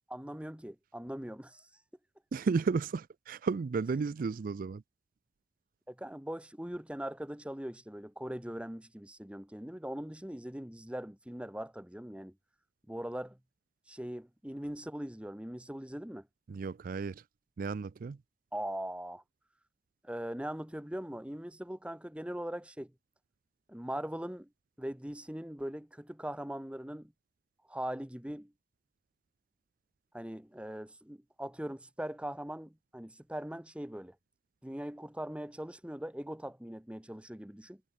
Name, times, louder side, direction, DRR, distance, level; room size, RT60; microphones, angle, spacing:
voice 1, 0.1-1.7 5.9-12.3 12.9-13.4 13.9-16.3 18.5-19.2 20.0-22.9 23.7-24.5 24.8-27.1 27.7-28.5 30.1-34.1 34.6-37.8, right 1 dB, 5° right, 1.1 m, -41 dB
voice 2, 2.3-4.8 16.5-17.2 17.6-18.2, right 4 dB, 50° right, 0.4 m, -33 dB
head